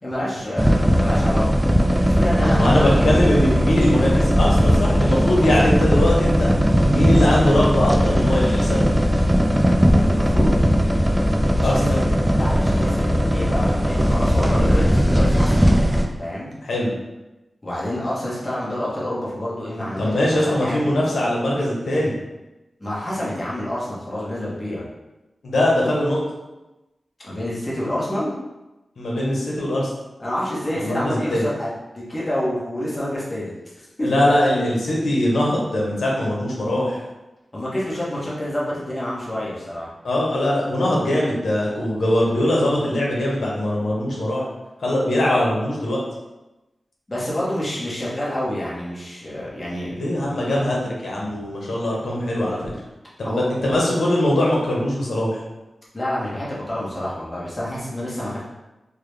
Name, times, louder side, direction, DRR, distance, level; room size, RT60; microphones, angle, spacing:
voice 1, 0.0-1.5 2.0-2.6 9.8-10.5 11.5-12.0 12.3-15.7 16.2-16.5 17.6-20.9 22.8-24.9 27.2-28.3 30.2-33.5 34.0-34.1 37.5-39.9 47.1-50.0 53.2-53.4 55.9-58.4, left 1 dB, 30° left, -7 dB, 1.1 m, -28 dB
sound 1, 0.6-16.1, equal, 10° right, 0.3 m, -18 dB
voice 2, 2.5-6.5 6.9-8.8 11.6-12.0 14.4-14.7 16.6-16.9 20.0-22.1 25.4-26.2 29.0-29.9 30.7-31.4 34.0-37.0 40.0-44.4 44.8-46.0 49.9-52.6 53.2-55.4, left 1 dB, 85° left, -3 dB, 0.8 m, -21 dB
3.5 x 2.2 x 3.3 m, 1.0 s
wide cardioid pair, 95°, 0 cm